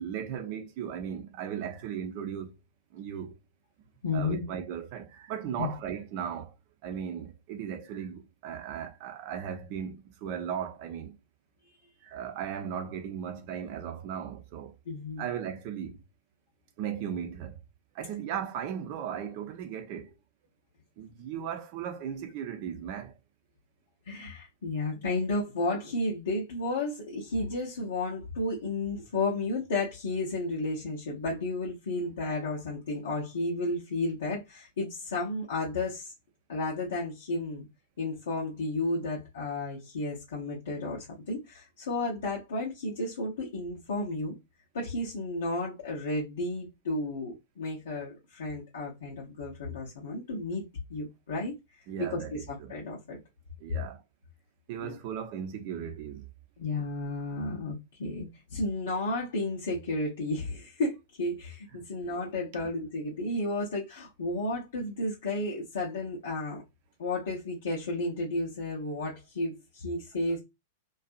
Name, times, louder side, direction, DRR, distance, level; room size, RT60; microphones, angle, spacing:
voice 1, 0.0-2.5 2.9-3.3 4.1-6.5 6.8-11.2 12.0-14.7 15.2-16.0 16.8-17.6 17.9-20.1 21.0-23.2 51.9-52.7 53.6-54.0 54.7-56.3, right 8 dB, 50° right, 0.6 m, -37 dB
voice 2, 4.0-4.4 5.6-5.7 14.9-15.3 24.1-36.1 36.5-37.7 38.0-44.4 44.7-51.5 52.1-53.2 54.8-55.0 56.6-66.6 67.0-70.4, left 2 dB, 70° left, 0.7 m, -32 dB
2.6 x 2.3 x 2.4 m
figure-of-eight pair, 100°, 0 cm